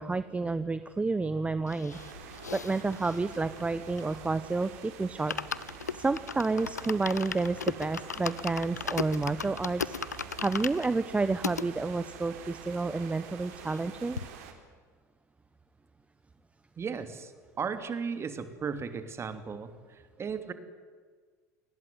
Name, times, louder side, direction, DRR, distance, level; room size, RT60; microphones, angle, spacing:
voice 1, 0.0-5.3 5.9-14.2, right 3 dB, 15° right, 13 dB, 1.0 m, -30 dB
sound 1, 1.7-4.5 4.8-4.9 5.1-11.7 12.2-12.3 12.5-12.6 12.9-13.9 14.2-14.3, left 6 dB, 85° left, 0.7 m, -37 dB
sound 2, 1.9-14.5, right 8 dB, 65° right, 4.1 m, -47 dB
voice 2, 16.8-17.3 17.6-20.5, right 6 dB, 30° right, 9 dB, 3.0 m, -36 dB
28.5 x 20.0 x 9.4 m, 1.6 s
figure-of-eight pair, 75°, 9 cm